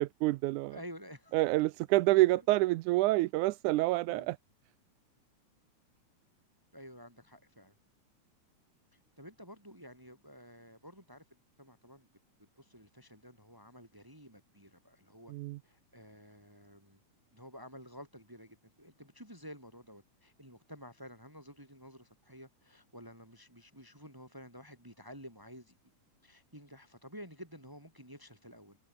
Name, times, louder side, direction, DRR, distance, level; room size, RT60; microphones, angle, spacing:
voice 1, 0.0-0.8 1.3-4.4 15.3-15.6, right 19 dB, 85° right, 2.0 m, -27 dB
voice 2, 0.7-1.3 2.3-2.5 4.1-4.3 6.7-7.7 8.9-11.2 11.6-12.1 12.6-15.3 15.6-17.0 17.3-25.7 26.2-28.8, equal, 5° right, 7.5 m, -51 dB
open air
omnidirectional pair, 3.5 m